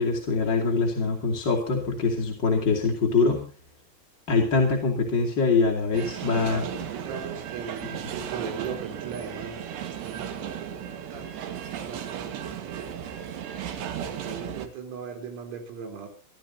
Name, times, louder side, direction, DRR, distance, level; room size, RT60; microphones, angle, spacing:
voice 1, 0.0-3.5 4.3-6.6, left 4 dB, 30° left, -1 dB, 2.2 m, -24 dB
sound 1, 5.9-14.7, right 9 dB, 65° right, 3.3 m, -35 dB
voice 2, 6.5-10.8 11.1-12.9 14.0-16.1, right 6 dB, 90° right, 3 dB, 6.7 m, -38 dB
24.0 x 14.5 x 2.8 m, 0.34 s
omnidirectional pair, 5.8 m